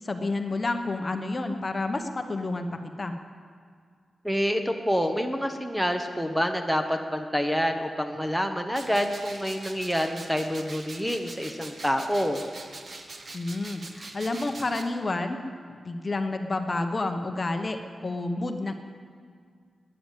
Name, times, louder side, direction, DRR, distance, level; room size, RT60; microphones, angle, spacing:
voice 1, 0.0-2.7 3.0-3.1 13.3-15.4 15.7-18.7, left 2 dB, 30° left, 6 dB, 1.0 m, -30 dB
voice 2, 4.2-12.4, equal, ahead, 6 dB, 0.9 m, -27 dB
sound 1, 8.7-14.8, right 2 dB, 45° right, 1.3 m, -43 dB
13.0 x 10.0 x 9.1 m, 2.1 s
wide cardioid pair, 125°, 0 cm